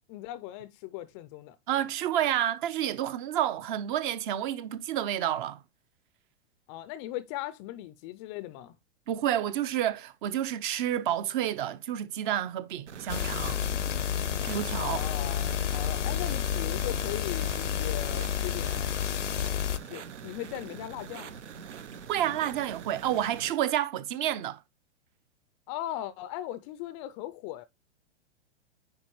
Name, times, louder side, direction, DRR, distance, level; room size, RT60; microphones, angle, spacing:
voice 1, 0.0-1.6 6.7-8.7 14.8-18.9 19.8-21.4 25.7-27.7, left 14 dB, 30° left, 0.4 m, -38 dB
voice 2, 1.7-5.6 9.1-13.6 14.5-15.0 22.1-24.6, right 11 dB, 45° right, 0.8 m, -29 dB
sound 1, 12.9-23.5, right 7 dB, 80° right, 0.9 m, -44 dB
sound 2, 13.1-19.8, left 9 dB, 90° left, 0.7 m, -30 dB
9.9 x 4.4 x 3.0 m
hypercardioid pair, 115°, 35 cm